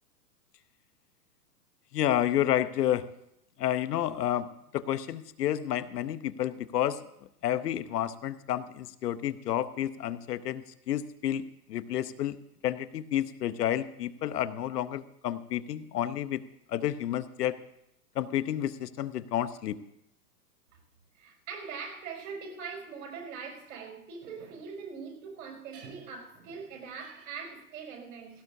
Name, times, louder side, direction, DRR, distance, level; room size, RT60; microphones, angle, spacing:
voice 1, 1.9-3.1 3.6-4.5 4.7-7.0 7.4-12.4 12.6-16.4 16.7-17.6 18.1-19.8, left 11 dB, 70° left, 0.9 m, -30 dB
voice 2, 21.1-28.4, right 5 dB, 50° right, 5.8 m, -42 dB
18.0 x 17.5 x 2.7 m
hypercardioid pair, 140°, 49 cm